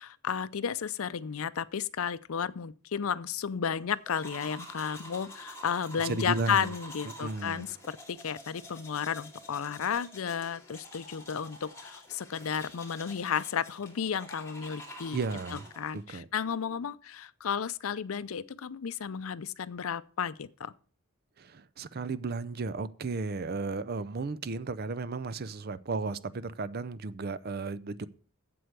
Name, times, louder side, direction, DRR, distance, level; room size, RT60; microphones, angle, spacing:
voice 1, 0.0-15.2 15.5-20.7, left 7 dB, 80° left, 0.5 m, -33 dB
sound 1, 4.0-16.0, left 1 dB, 15° left, 2.5 m, -48 dB
voice 2, 6.0-6.7 7.0-7.7 15.1-16.3 21.4-28.1, right 3 dB, 50° right, 0.5 m, -34 dB
7.9 x 7.9 x 6.6 m
head